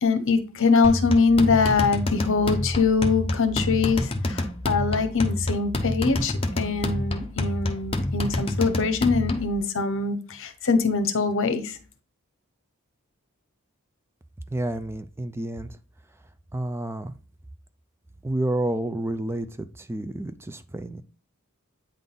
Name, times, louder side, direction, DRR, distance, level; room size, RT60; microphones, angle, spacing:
voice 1, 0.0-11.8, left 4 dB, 60° left, 9 dB, 1.0 m, -23 dB
sound 1, 0.8-9.6, left 1 dB, 25° left, 0.8 m, -28 dB
voice 2, 14.5-15.8 16.5-17.1 18.2-21.0, right 1 dB, 10° right, 10 dB, 0.3 m, -30 dB
8.9 x 3.8 x 3.9 m, 0.38 s
head